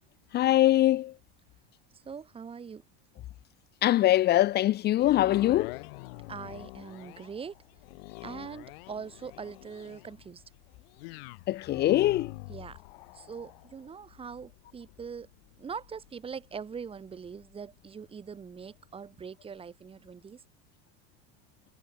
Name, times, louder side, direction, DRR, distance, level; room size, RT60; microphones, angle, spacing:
voice 1, 0.3-1.1 3.8-5.8 11.5-12.3, left 14 dB, 35° left, 1.1 m, -23 dB
voice 2, 2.0-2.8 6.3-7.5 8.2-10.4 12.5-12.8 13.1-15.3 15.6-20.4, right 6 dB, 20° right, 4.7 m, -42 dB
sound 1, 5.0-19.2 19.7-19.8, left 25 dB, 75° left, 4.6 m, -46 dB
cardioid pair, 155°, 29 cm